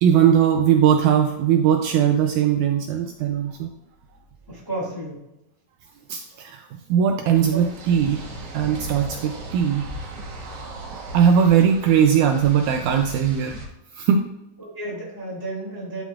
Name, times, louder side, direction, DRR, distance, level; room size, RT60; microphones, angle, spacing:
voice 1, 0.0-3.7 6.1-8.2 8.5-9.9 10.9-13.6 13.9-14.2, right 8 dB, 80° right, 5 dB, 1.8 m, -19 dB
voice 2, 4.5-5.2 7.5-7.6 14.6-16.0, right 2 dB, 10° left, -5 dB, 1.5 m, -32 dB
sound 1, 7.3-13.6, right 2 dB, 60° right, 1.8 m, -37 dB
11.5 x 5.8 x 2.4 m, 0.88 s
omnidirectional pair, 3.8 m